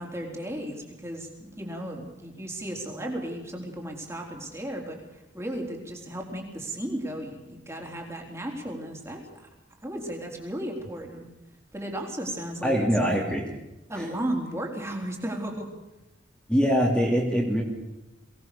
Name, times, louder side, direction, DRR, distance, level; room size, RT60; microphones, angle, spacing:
voice 1, 0.0-9.5 9.8-11.2 11.7-13.2 13.9-15.7, right 1 dB, 15° right, 1 dB, 3.9 m, -35 dB
voice 2, 12.6-13.4 13.9-14.1 16.5-17.6, equal, 5° left, -4 dB, 3.0 m, -23 dB
23.5 x 18.5 x 6.9 m, 0.97 s
head